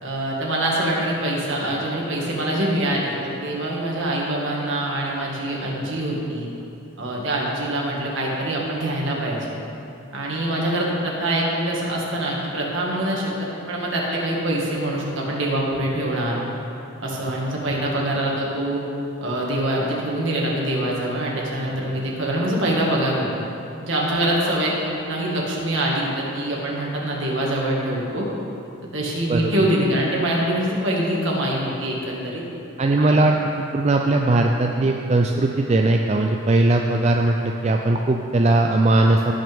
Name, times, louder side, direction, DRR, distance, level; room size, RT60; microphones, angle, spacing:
voice 1, 0.0-6.5 7.0-9.4 10.1-16.4 17.0-18.8 19.2-23.4 23.8-28.3 28.9-32.4 33.0-33.2, right 1 dB, 60° right, -3 dB, 1.9 m, -24 dB
voice 2, 32.8-33.4 33.7-39.3, right 2 dB, 30° right, 2 dB, 0.3 m, -19 dB
17.0 x 6.1 x 3.5 m, 2.8 s
head